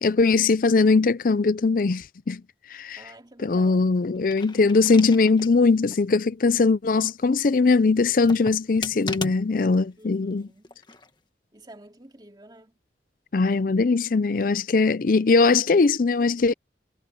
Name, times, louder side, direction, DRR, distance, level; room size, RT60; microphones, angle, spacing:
voice 1, 0.0-2.4 2.7-3.0 3.4-10.5 13.3-16.5, left 4 dB, 50° left, 0.5 m, -20 dB
voice 2, 3.0-3.9 10.0-10.8 11.5-12.7, right 1 dB, 25° right, 2.3 m, -49 dB
sound 1, 4.2-5.6 6.0-6.1 8.0-9.8 10.6-11.1, left 3 dB, 25° left, 1.7 m, -36 dB
head